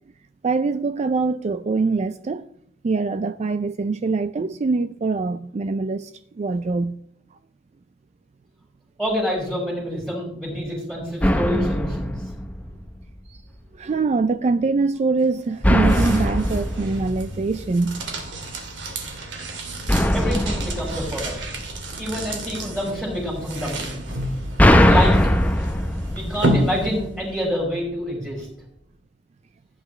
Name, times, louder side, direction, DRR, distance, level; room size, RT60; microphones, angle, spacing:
voice 1, 0.4-2.5 2.8-7.0 13.3-13.4 13.8-18.0, right 4 dB, 35° right, 0.4 m, -23 dB
voice 2, 9.0-12.2 20.1-21.4 22.0-24.1 24.7-25.1 26.1-28.5, equal, 10° right, 4.3 m, -27 dB
sound 1, 11.2-13.1 15.6-18.1 19.9-22.1 24.1-27.2, equal, 10° left, 0.7 m, -21 dB
sound 2, 15.2-27.4, right 1 dB, 70° right, 2.5 m, -31 dB
15.5 x 9.3 x 3.2 m
head